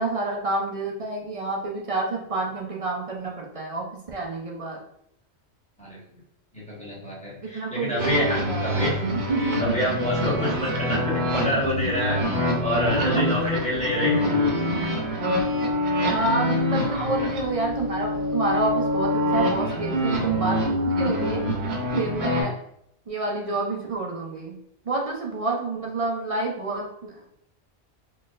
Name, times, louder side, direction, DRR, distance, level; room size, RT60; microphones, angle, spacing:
voice 1, 0.0-4.8 7.4-8.6 9.1-9.8 13.4-13.5 14.7-14.9 16.1-21.5 21.9-22.5 23.1-24.6 24.9-27.1, right 2 dB, 45° right, -1 dB, 0.5 m, -28 dB
voice 2, 6.5-14.3 16.9-17.3 18.5-18.6, equal, 5° left, -7 dB, 1.2 m, -28 dB
sound 1, 8.0-22.4, left 1 dB, 60° right, 1.0 m, -25 dB
3.9 x 3.1 x 2.5 m, 0.74 s
omnidirectional pair, 1.3 m